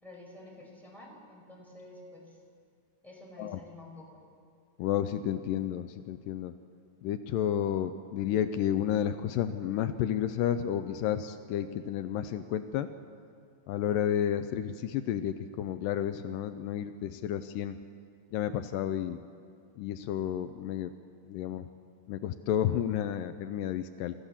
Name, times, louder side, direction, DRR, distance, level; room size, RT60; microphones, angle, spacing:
voice 1, 0.0-2.4 3.0-4.2, left 2 dB, ahead, -3 dB, 4.8 m, -49 dB
voice 2, 4.8-6.5 7.0-12.9 13.7-17.8 18.3-19.2 19.8-20.9 21.2-21.7 22.1-24.2, left 10 dB, 85° left, 10 dB, 2.3 m, -31 dB
27.0 x 14.0 x 7.2 m, 2.3 s
omnidirectional pair, 3.9 m